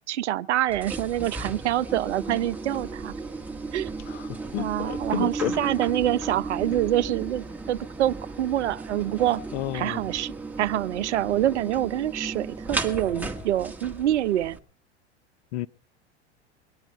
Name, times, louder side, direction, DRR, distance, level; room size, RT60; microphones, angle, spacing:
voice 1, 0.1-3.1 3.7-3.9 4.6-9.4 9.7-14.6, right 13 dB, 80° right, 0.6 m, -26 dB
sound 1, 0.7-14.6, right 3 dB, 5° right, 1.8 m, -35 dB
voice 2, 4.1-5.5 9.5-10.1 15.5-15.7, left 14 dB, 65° left, 0.8 m, -31 dB
23.0 x 10.0 x 4.5 m
hypercardioid pair, 95°, 34 cm